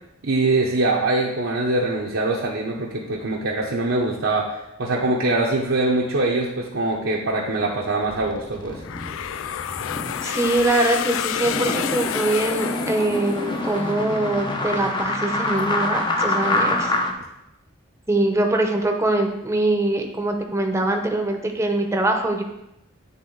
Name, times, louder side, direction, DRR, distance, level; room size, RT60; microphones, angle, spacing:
voice 1, 0.2-8.8, right 2 dB, 75° right, -3 dB, 0.9 m, -23 dB
sound 1, 8.0-17.1, left 2 dB, 25° left, 0.7 m, -27 dB
sound 2, 8.8-13.8, left 10 dB, 75° left, 0.3 m, -29 dB
voice 2, 10.2-16.9 18.1-22.4, right 2 dB, 15° right, 3 dB, 0.8 m, -23 dB
9.4 x 3.6 x 3.9 m, 0.84 s
head